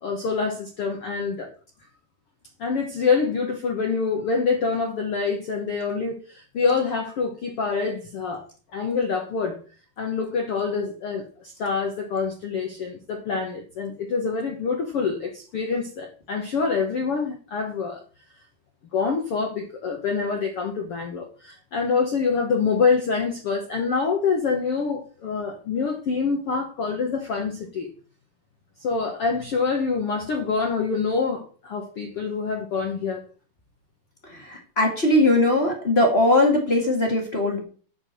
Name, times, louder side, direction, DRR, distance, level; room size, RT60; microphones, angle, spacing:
voice 1, 0.0-1.5 2.6-8.4 8.7-9.6 10.0-18.0 18.9-27.9 28.8-33.2, left 5 dB, 70° left, 1.4 m, -26 dB
voice 2, 34.2-37.6, left 1 dB, 35° left, 0.9 m, -20 dB
9.5 x 4.8 x 6.7 m
omnidirectional pair, 4.4 m